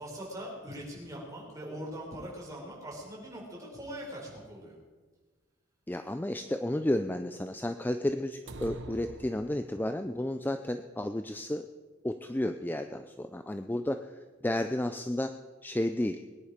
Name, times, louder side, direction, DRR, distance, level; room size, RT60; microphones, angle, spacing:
voice 1, 0.0-4.7, equal, 15° right, -3 dB, 5.0 m, -41 dB
voice 2, 5.9-11.7 12.0-14.0 14.4-15.3 15.6-16.2, left 1 dB, 10° left, 8 dB, 0.5 m, -32 dB
sound 1, 8.5-10.1, right 2 dB, 65° right, 1.1 m, -44 dB
22.0 x 10.5 x 5.1 m, 1.4 s
head